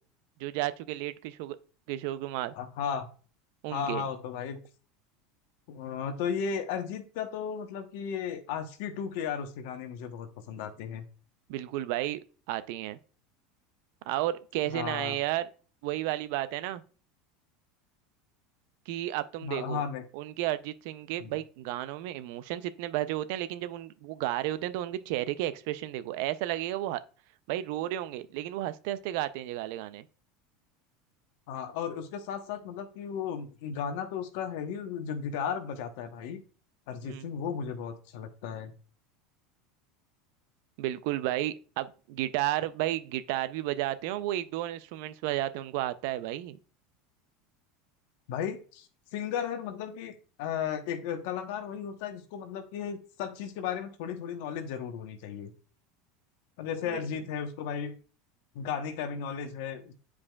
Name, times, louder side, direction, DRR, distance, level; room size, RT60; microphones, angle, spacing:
voice 1, 0.4-1.6 1.9-2.5 3.6-4.0 11.5-12.2 12.5-13.0 14.1-15.5 15.8-16.8 18.9-19.8 20.1-27.0 27.5-30.0 37.0-37.3 40.8-46.6 56.9-57.0, right 14 dB, 70° right, 0.5 m, -32 dB
voice 2, 2.5-3.1 3.7-4.6 5.7-11.0 14.7-15.2 19.4-20.0 21.2-21.3 31.5-36.4 36.9-38.7 48.3-55.5 56.6-57.9 58.5-59.9, left 7 dB, 70° left, 1.0 m, -35 dB
8.6 x 4.8 x 2.3 m
supercardioid pair, 105°, 0 cm